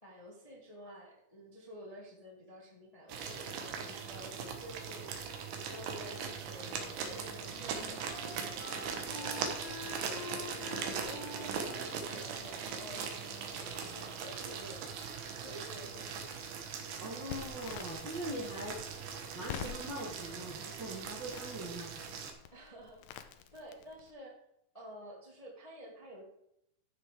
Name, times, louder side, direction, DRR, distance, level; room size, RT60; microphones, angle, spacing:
voice 1, 0.0-9.7 10.0-15.0 15.3-16.3 22.5-24.4 24.7-26.2, equal, 20° left, -3 dB, 1.1 m, -51 dB
sound 1, 3.1-22.3, right 6 dB, 75° right, 2.9 m, -40 dB
Wind instrument woodwind instrument, 6.5-14.3, left 2 dB, 50° left, 1.5 m, -49 dB
voice 2, 17.0-18.8 19.3-21.9, right 1 dB, 55° right, -2 dB, 1.3 m, -41 dB
Crackle, 17.3-24.1, left 9 dB, 80° left, 2.2 m, -48 dB
13.5 x 6.6 x 3.6 m, 0.79 s
omnidirectional pair, 4.1 m